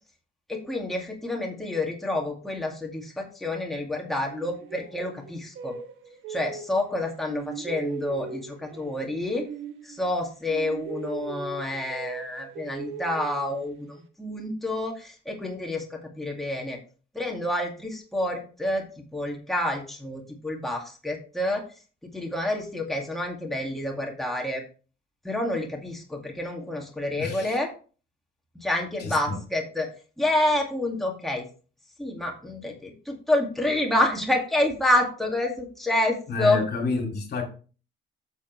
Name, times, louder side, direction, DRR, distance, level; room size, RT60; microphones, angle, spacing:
voice 1, 0.5-5.7 6.3-9.5 9.8-16.8 17.1-21.6 22.1-24.6 25.2-27.7 28.6-29.9 30.2-31.4 32.0-36.6, left 1 dB, ahead, 2.1 m, -28 dB
sound 1, 4.2-7.0 7.3-10.2 10.5-14.0, right 6 dB, 85° right, 1.2 m, -39 dB
voice 2, 27.2-27.5 29.0-29.4 36.3-37.4, left 3 dB, 55° left, 2.5 m, -29 dB
8.3 x 7.1 x 3.2 m
cardioid pair, 90°, 20 cm